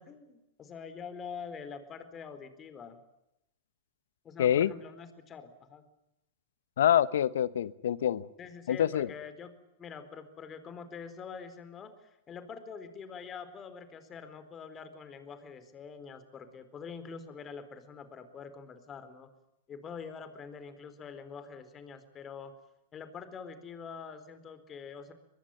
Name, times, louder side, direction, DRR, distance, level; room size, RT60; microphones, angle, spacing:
voice 1, 0.0-3.0 4.2-5.8 8.4-19.3 19.7-22.5 22.9-25.1, left 6 dB, 25° left, 11 dB, 4.2 m, -45 dB
voice 2, 4.4-4.7 6.8-8.3 8.7-9.1, left 10 dB, 75° left, 18 dB, 1.1 m, -26 dB
24.0 x 21.0 x 9.3 m, 0.86 s
hypercardioid pair, 110°, 0 cm